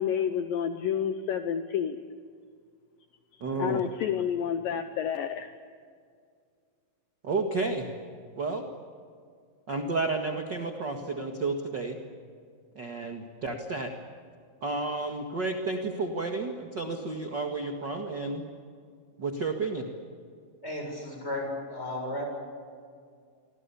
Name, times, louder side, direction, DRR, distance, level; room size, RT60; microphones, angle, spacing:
voice 1, 0.0-2.0 3.6-5.5, left 8 dB, 70° left, 8 dB, 2.4 m, -29 dB
voice 2, 3.4-3.8 7.2-7.9 8.4-8.7 9.7-12.0 12.8-13.9 14.6-18.4 19.2-19.9, right 3 dB, 40° right, 4 dB, 1.7 m, -31 dB
voice 3, 20.6-22.2, left 1 dB, 15° left, 1 dB, 7.6 m, -34 dB
28.0 x 25.0 x 7.1 m, 2.2 s
omnidirectional pair, 4.5 m